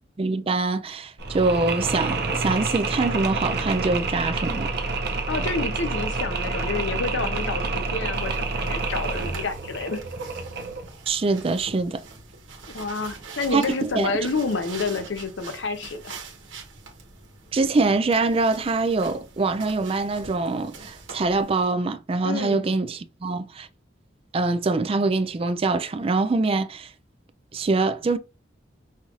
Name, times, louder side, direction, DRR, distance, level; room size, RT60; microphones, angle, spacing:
voice 1, 0.2-4.7 11.1-12.0 13.5-14.1 17.5-23.7 24.3-26.9 27.5-28.2, right 3 dB, 30° right, 0.4 m, -24 dB
Mechanisms, 1.2-10.9, right 3 dB, 60° right, 0.7 m, -28 dB
voice 2, 5.3-10.0 12.7-16.1 22.2-22.6, left 3 dB, 75° left, 0.7 m, -29 dB
sound 1, 8.1-21.7, right 4 dB, 85° right, 1.2 m, -44 dB
5.5 x 2.5 x 3.0 m
head